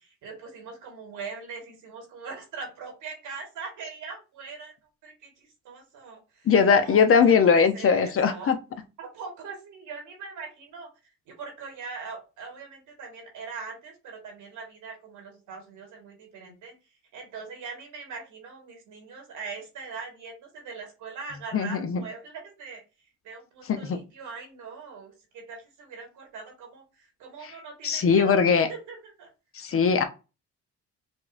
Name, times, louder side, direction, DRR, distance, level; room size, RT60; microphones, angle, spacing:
voice 1, 0.0-4.7 5.0-8.5 9.0-10.9 11.3-16.8 17.1-22.8 23.2-26.8 27.2-29.3, right 4 dB, 85° right, 2 dB, 1.7 m, -41 dB
voice 2, 6.5-8.6 21.5-22.0 23.7-24.0 27.8-28.7 29.5-30.0, left 6 dB, 45° left, 8 dB, 0.8 m, -20 dB
5.3 x 2.4 x 2.5 m, 0.29 s
cardioid pair, 90°, 30 cm